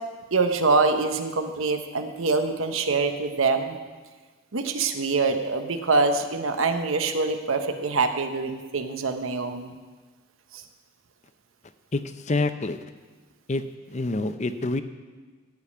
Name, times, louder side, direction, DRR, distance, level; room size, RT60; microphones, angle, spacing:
voice 1, 0.3-3.8 4.5-9.7, right 3 dB, 75° right, 6 dB, 1.0 m, -24 dB
voice 2, 12.3-12.8 13.5-13.6 13.9-14.8, left 2 dB, 35° left, 10 dB, 0.6 m, -26 dB
15.5 x 5.3 x 8.4 m, 1.4 s
head